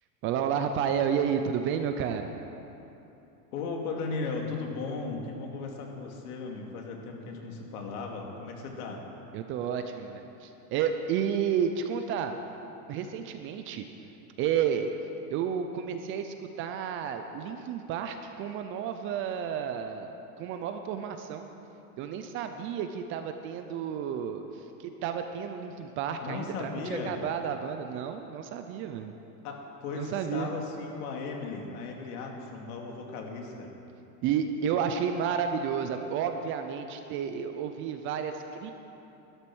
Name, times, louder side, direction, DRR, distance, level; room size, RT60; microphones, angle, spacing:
voice 1, 0.2-2.4 9.3-12.4 12.9-13.9 14.4-14.9 15.3-21.5 22.0-29.1 29.9-30.5 34.2-38.7, right 8 dB, 30° right, 7 dB, 0.5 m, -31 dB
voice 2, 3.5-9.0 26.2-27.1 29.4-33.7, left 4 dB, 70° left, 1 dB, 2.6 m, -36 dB
12.5 x 12.0 x 6.2 m, 2.9 s
supercardioid pair, 145°, 46 cm